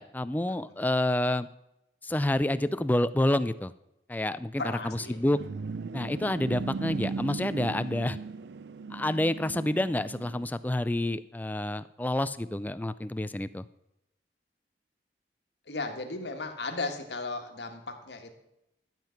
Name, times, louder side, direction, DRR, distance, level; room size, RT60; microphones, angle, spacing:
voice 1, 0.0-1.5 2.0-3.7 4.1-5.4 5.9-8.2 8.9-13.7, left 1 dB, 10° left, 14 dB, 0.3 m, -28 dB
voice 2, 4.6-5.2 15.7-18.3, left 3 dB, 80° left, 5 dB, 1.7 m, -35 dB
sound 1, 4.9-10.5, right 4 dB, 75° right, 0.4 m, -37 dB
12.0 x 7.6 x 5.8 m, 0.87 s
head